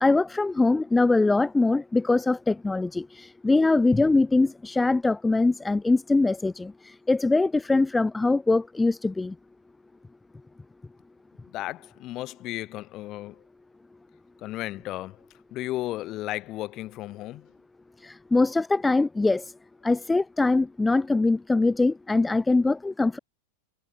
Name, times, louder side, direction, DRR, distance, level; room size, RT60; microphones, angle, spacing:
voice 1, 0.0-3.0 3.4-6.7 7.1-9.3 18.3-19.4 19.8-23.2, left 3 dB, 10° left, 0.4 m, -22 dB
voice 2, 11.5-13.4 14.4-15.2 15.5-17.5, left 16 dB, 35° left, 3.3 m, -34 dB
figure-of-eight pair, 90°, 0 cm